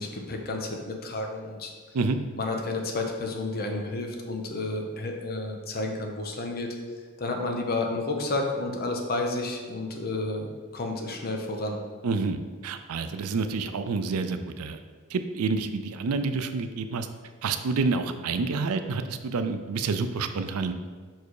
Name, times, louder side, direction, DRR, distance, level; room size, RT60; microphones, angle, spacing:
voice 1, 0.0-1.7 2.4-6.7 7.2-11.8, left 2 dB, 45° left, 2 dB, 0.9 m, -31 dB
voice 2, 12.0-14.8 15.1-17.1 17.4-20.7, right 4 dB, 80° right, 9 dB, 0.5 m, -28 dB
5.3 x 4.6 x 4.7 m, 1.5 s
head